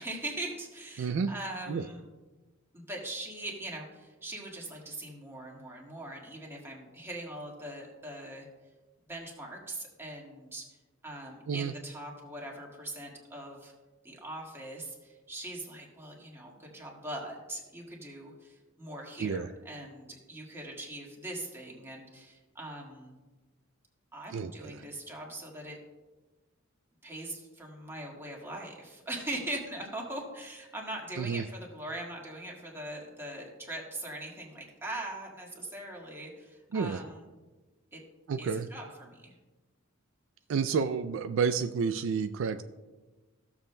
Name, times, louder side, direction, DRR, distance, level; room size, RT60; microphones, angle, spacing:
voice 1, 0.0-2.0 2.7-8.5 9.0-10.8 11.0-13.7 14.0-23.2 24.1-25.8 27.0-37.3 37.9-38.0 38.4-39.3, right 1 dB, 10° right, -2 dB, 1.7 m, -41 dB
voice 2, 1.0-1.3 1.7-1.8 11.5-11.7 19.2-19.5 24.3-24.8 31.2-31.4 36.7-37.0 38.3-38.7 40.5-42.6, right 5 dB, 70° right, 10 dB, 0.4 m, -30 dB
15.5 x 7.0 x 2.2 m, 1.2 s
head